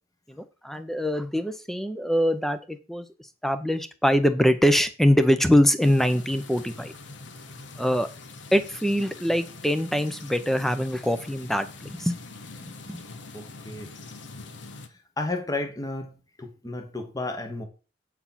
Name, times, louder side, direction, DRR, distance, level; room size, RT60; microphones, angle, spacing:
voice 1, 0.3-3.1 3.4-6.9 7.8-8.1 8.5-12.2 12.6-13.0, equal, ahead, 0.7 m, -23 dB
sound 1, 5.8-14.9, left 3 dB, 75° left, 1.0 m, -44 dB
voice 2, 13.3-13.9 15.2-17.7, left 2 dB, 20° left, 1.1 m, -33 dB
8.3 x 4.8 x 5.7 m
head